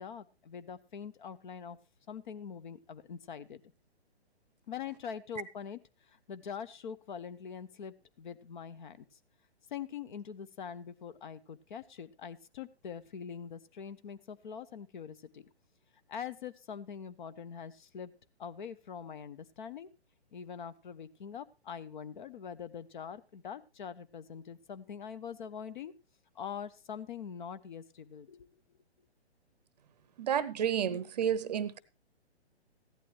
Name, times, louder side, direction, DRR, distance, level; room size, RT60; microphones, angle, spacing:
voice 1, 0.0-1.8 2.1-3.6 4.7-5.8 6.1-9.0 9.7-15.4 16.1-18.1 18.4-19.9 20.3-25.9 26.3-28.5, left 7 dB, 45° left, 14 dB, 0.9 m, -43 dB
voice 2, 30.2-31.8, right 8 dB, 40° right, 19 dB, 0.7 m, -31 dB
15.0 x 11.0 x 3.2 m, 0.30 s
figure-of-eight pair, 130°, 34 cm